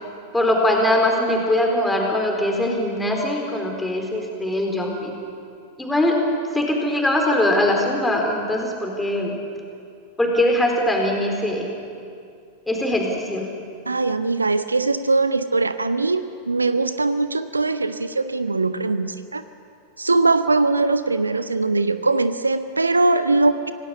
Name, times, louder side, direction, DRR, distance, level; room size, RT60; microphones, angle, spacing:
voice 1, 0.3-5.1 5.8-6.2 6.5-9.4 10.2-11.7 12.7-13.5, left 1 dB, 5° left, 1 dB, 4.3 m, -21 dB
voice 2, 13.9-19.4 20.0-23.7, right 3 dB, 80° right, 12 dB, 0.8 m, -21 dB
26.5 x 18.0 x 7.1 m, 2.4 s
figure-of-eight pair, 90°, 0 cm